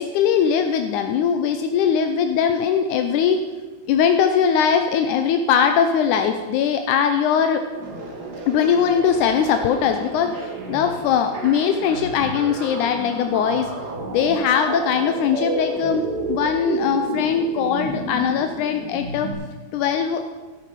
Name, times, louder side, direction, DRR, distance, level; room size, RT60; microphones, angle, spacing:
voice 1, 0.0-3.5 3.9-7.6 8.5-10.4 10.7-13.7 14.1-16.0 16.3-19.3 19.7-20.2, left 7 dB, 85° left, 7 dB, 1.7 m, -20 dB
sound 1, 7.7-19.3, right 2 dB, 45° right, 1.4 m, -31 dB
12.5 x 11.5 x 5.2 m, 1.3 s
omnidirectional pair, 4.3 m